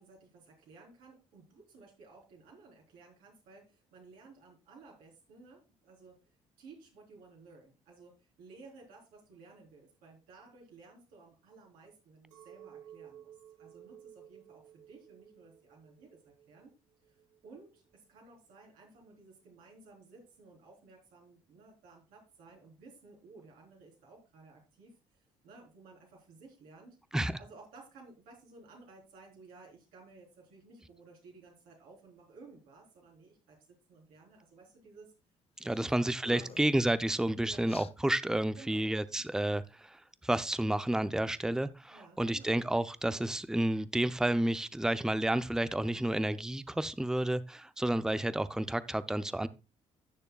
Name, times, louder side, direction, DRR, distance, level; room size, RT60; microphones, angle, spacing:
voice 1, 0.0-16.7 17.1-27.0 27.4-35.1 35.6-36.7 37.4-37.7 38.6-38.9 41.9-42.6, right 3 dB, 70° right, 4.0 m, -56 dB
Chink clink, 12.3-17.8, right 10 dB, 90° right, 1.1 m, -55 dB
sound 1, 35.6-35.9 36.2-36.8 37.7-37.9, left 8 dB, 40° left, 0.5 m, -49 dB
voice 2, 35.7-49.5, right 1 dB, 5° right, 0.6 m, -31 dB
16.5 x 6.7 x 2.4 m
hypercardioid pair, 50°, 15 cm